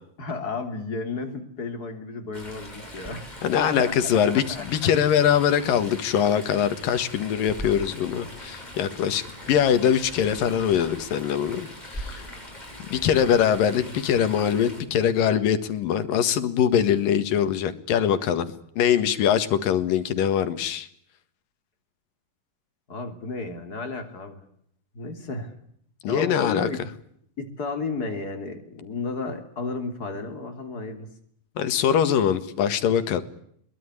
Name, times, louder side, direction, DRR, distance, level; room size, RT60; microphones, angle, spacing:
voice 1, 0.2-4.9 22.9-24.5 24.9-25.5 26.1-26.8 27.4-31.1, left 3 dB, 30° left, 5 dB, 3.4 m, -33 dB
Chatter / Stream, 2.3-14.8, left 1 dB, 10° left, 6.0 m, -41 dB
voice 2, 3.4-9.2 9.5-12.2 12.9-18.5 18.8-20.9 26.0-26.7 31.6-33.2, left 9 dB, 85° left, 11 dB, 3.4 m, -22 dB
23.0 x 22.5 x 9.9 m, 0.68 s
omnidirectional pair, 3.8 m